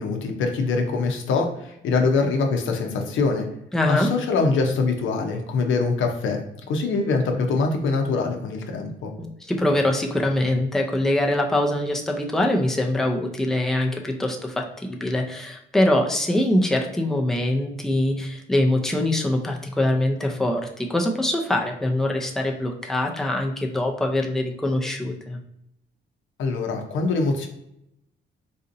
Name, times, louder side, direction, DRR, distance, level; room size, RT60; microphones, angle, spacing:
voice 1, 0.0-3.5 3.9-6.4 6.7-9.1 26.4-27.5, left 4 dB, 75° left, 4 dB, 0.7 m, -23 dB
voice 2, 3.7-4.1 9.2-25.4, left 1 dB, ahead, 1 dB, 0.5 m, -23 dB
4.0 x 2.6 x 2.6 m, 0.79 s
cardioid pair, 90°, 20 cm